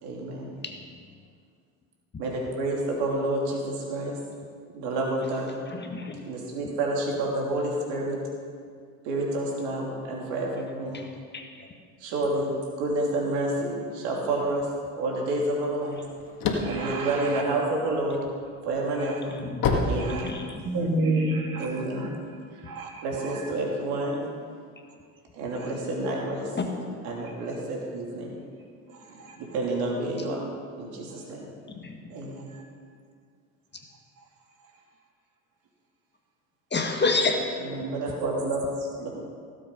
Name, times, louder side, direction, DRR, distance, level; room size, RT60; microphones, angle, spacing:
voice 1, 0.0-0.5 2.2-4.2 4.7-5.5 6.3-8.2 9.0-11.1 12.0-12.5 12.8-14.7 14.9-16.0 16.6-18.2 18.6-19.4 19.8-20.3 21.6-22.1 22.5-22.6 23.0-24.2 25.3-26.5 27.0-28.3 29.4-30.5 30.8-31.5 32.1-32.5 37.6-39.1, right 2 dB, 70° right, -2 dB, 3.1 m, -29 dB
voice 2, 5.7-6.2 10.9-11.0 11.3-11.4 19.4-19.6 20.2-20.6 26.6-26.7 31.8-32.0 36.7-37.5, left 3 dB, 25° left, 3 dB, 1.7 m, -28 dB
sound 1, 15.9-18.1 18.6-20.8, left 4 dB, 55° left, 1.9 m, -27 dB
voice 3, 16.6-17.4 19.0-19.2 20.0-20.3 20.6-22.1 22.6-23.4 25.6-25.7 28.9-29.4 32.5-32.6, right 2 dB, 50° right, 1 dB, 2.8 m, -31 dB
16.5 x 7.9 x 5.6 m, 2.1 s
hypercardioid pair, 70°, 41 cm